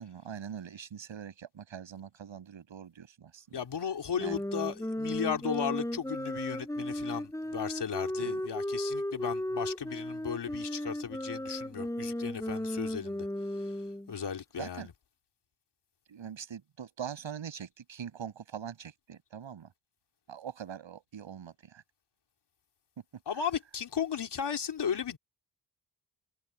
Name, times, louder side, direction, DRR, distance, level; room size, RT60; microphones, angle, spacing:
voice 1, 0.0-3.6 4.2-4.4 8.2-8.4 14.6-14.9 16.1-19.7 20.3-21.8, right 8 dB, 70° right, 8.0 m, -43 dB
voice 2, 3.5-13.3 14.1-14.9 23.3-25.2, left 7 dB, 60° left, 3.4 m, -35 dB
sound 1, 4.1-14.1, left 1 dB, 5° left, 7.8 m, -35 dB
wide cardioid pair, 120°, 47 cm